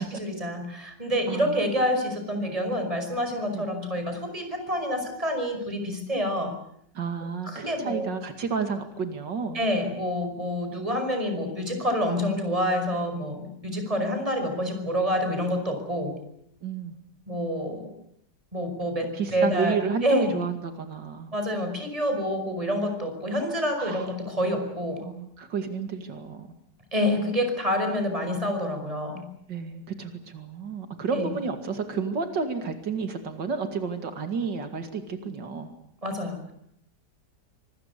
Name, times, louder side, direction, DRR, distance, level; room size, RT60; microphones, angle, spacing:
voice 1, 0.0-6.5 7.4-8.1 9.5-16.1 17.3-17.9 18.5-20.3 21.3-25.0 26.9-29.3 31.1-31.3 36.0-36.5, equal, 20° right, 6 dB, 5.4 m, -27 dB
voice 2, 1.3-2.0 3.5-3.6 6.9-9.6 13.7-13.9 16.6-17.0 19.1-21.3 23.8-24.1 25.0-26.5 29.5-35.7, right 5 dB, 90° right, 7 dB, 2.9 m, -31 dB
25.0 x 20.5 x 8.3 m, 0.72 s
omnidirectional pair, 1.9 m